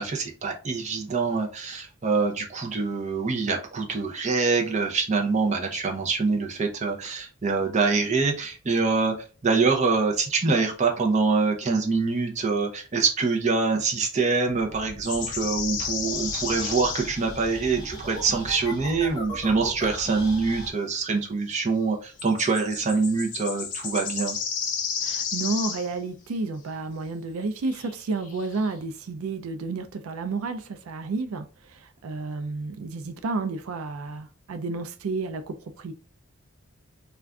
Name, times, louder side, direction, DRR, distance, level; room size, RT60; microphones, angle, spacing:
voice 1, 0.0-24.4, right 4 dB, 35° right, 0.5 m, -25 dB
sound 1, 14.6-20.7, right 1 dB, 20° left, 0.8 m, -38 dB
sound 2, 15.0-17.2 17.6-17.7 22.2-25.9 27.7-28.0 28.2-28.7, left 7 dB, 35° left, 0.4 m, -32 dB
voice 2, 25.0-35.9, right 3 dB, 90° right, 0.4 m, -31 dB
2.4 x 2.2 x 3.4 m
head